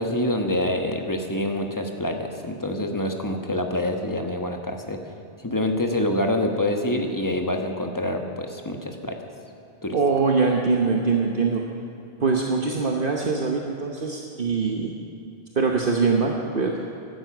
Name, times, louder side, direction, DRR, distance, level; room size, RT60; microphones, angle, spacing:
voice 1, 0.0-5.0 5.4-9.2 9.8-10.0, left 1 dB, 20° left, 3 dB, 1.3 m, -26 dB
voice 2, 9.9-11.6 12.2-14.9 15.5-16.7, right 4 dB, 60° right, 1 dB, 1.2 m, -23 dB
15.5 x 12.0 x 6.0 m, 2.7 s
omnidirectional pair, 1.0 m